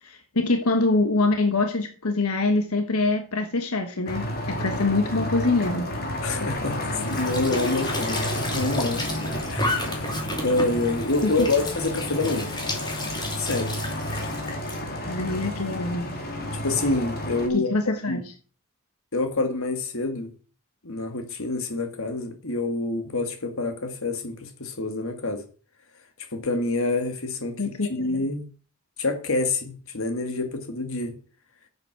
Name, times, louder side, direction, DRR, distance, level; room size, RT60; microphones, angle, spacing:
voice 1, 0.0-5.9 11.2-11.5 15.1-16.1 17.5-18.2 27.6-28.2, left 3 dB, 90° left, 1.4 m, -24 dB
sound 1, 4.1-17.5, left 1 dB, 45° left, 2.8 m, -31 dB
voice 2, 6.2-6.8 7.0-9.1 9.5-10.1 10.4-12.5 13.4-13.7 16.5-17.7 18.1-18.2 19.1-20.3 20.8-25.4 26.3-27.6 27.9-28.5 29.0-31.1, left 2 dB, 65° left, 2.0 m, -27 dB
Squeak / Sink (filling or washing) / Trickle dribble, 6.9-14.8, left 2 dB, 20° left, 2.9 m, -32 dB
10.5 x 8.0 x 6.0 m
head